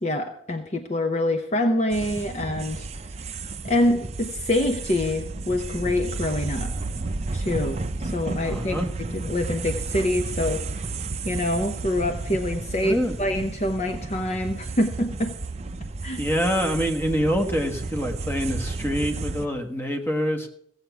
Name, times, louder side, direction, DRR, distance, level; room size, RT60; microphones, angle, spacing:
voice 1, 0.0-2.9 3.6-6.9 7.3-10.6 11.2-15.3 16.0-16.2, left 1 dB, 35° left, 5 dB, 0.8 m, -26 dB
sound 1, 1.9-19.5, right 3 dB, 35° right, 0.6 m, -32 dB
voice 2, 8.4-8.9 12.8-13.2 16.2-20.5, equal, 10° left, 4 dB, 1.4 m, -26 dB
16.0 x 8.1 x 6.0 m, 0.68 s
head